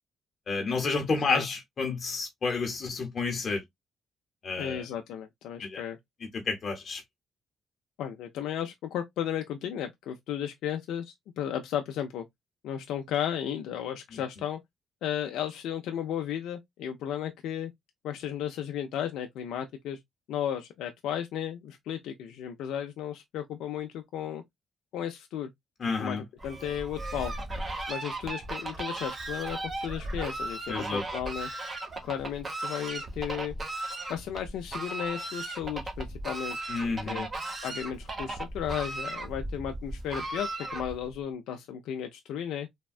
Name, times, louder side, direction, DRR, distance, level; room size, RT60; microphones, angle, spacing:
voice 1, 0.5-3.6 4.4-4.8 5.6-5.8 6.3-7.0 25.8-26.2 30.7-31.0 36.7-37.3, left 4 dB, 50° left, 0.8 m, -30 dB
voice 2, 4.6-6.0 8.0-12.2 12.6-14.6 15.0-17.7 18.0-20.0 20.3-24.4 24.9-25.5 26.0-27.3 27.9-31.5 32.0-33.5 34.1-36.6 36.8-37.3 37.6-42.7, left 9 dB, 85° left, 0.3 m, -34 dB
Fowl, 26.4-41.1, right 2 dB, 30° right, 0.9 m, -36 dB
3.4 x 2.1 x 2.3 m
cardioid pair, 90°, 0 cm